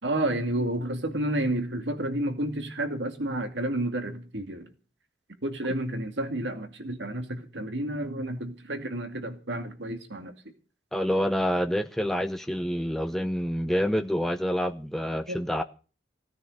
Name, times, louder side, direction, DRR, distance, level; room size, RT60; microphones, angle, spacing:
voice 1, 0.0-4.6 5.4-10.3 15.3-15.4, right 1 dB, 75° right, 7 dB, 2.4 m, -30 dB
voice 2, 10.9-15.6, equal, ahead, 7 dB, 0.6 m, -27 dB
17.0 x 9.5 x 6.5 m, 0.38 s
head